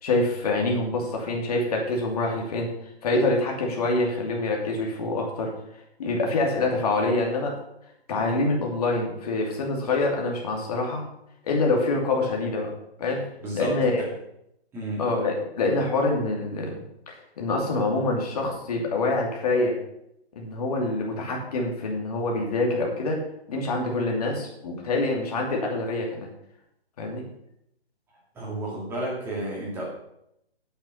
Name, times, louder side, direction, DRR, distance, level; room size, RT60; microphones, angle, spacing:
voice 1, 0.0-2.7 3.0-5.5 6.0-7.5 8.1-11.0 11.4-12.7 13.0-13.2 13.5-14.0 15.0-16.8 17.1-19.7 20.4-23.2 23.5-26.3 27.0-27.2, left 2 dB, 35° left, 0 dB, 2.6 m, -25 dB
voice 2, 13.4-14.1 14.7-15.1 28.3-29.8, right 1 dB, 5° right, -4 dB, 2.2 m, -32 dB
8.9 x 7.4 x 5.8 m, 0.78 s
hypercardioid pair, 160°, 32 cm